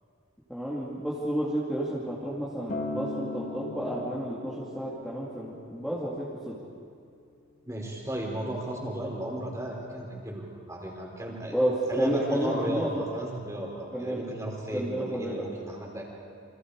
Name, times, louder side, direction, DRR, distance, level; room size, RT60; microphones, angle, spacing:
voice 1, 0.5-6.6 11.5-13.0 13.9-14.2 14.7-15.4, right 1 dB, ahead, -8 dB, 2.8 m, -31 dB
Acoustic guitar, 2.7-7.0 7.8-7.9, left 2 dB, 35° left, 1.9 m, -38 dB
voice 2, 7.7-11.6 11.9-16.0, right 1 dB, 15° right, -1 dB, 4.6 m, -34 dB
29.5 x 26.5 x 5.0 m, 2.4 s
head